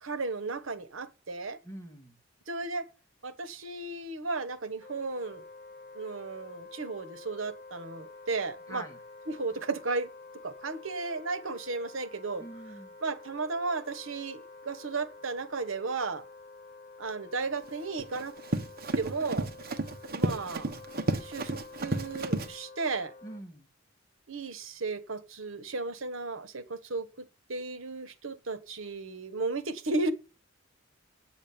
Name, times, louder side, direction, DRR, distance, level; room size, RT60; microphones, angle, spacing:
voice 1, 0.0-1.6 2.5-2.9 3.2-5.4 5.9-8.9 9.3-10.1 10.4-12.4 13.0-16.2 17.0-18.4 19.0-19.5 20.1-20.7 21.2-23.1 24.3-30.1, right 3 dB, 75° right, 1.2 m, -34 dB
voice 2, 1.6-2.2 8.7-9.0 12.4-12.9 23.2-23.7, right 1 dB, 15° left, 2.2 m, -45 dB
Wind instrument woodwind instrument, 4.8-23.4, left 3 dB, 45° left, 1.1 m, -49 dB
Run, 17.7-22.5, right 1 dB, 45° right, 1.1 m, -32 dB
8.7 x 7.4 x 8.6 m
head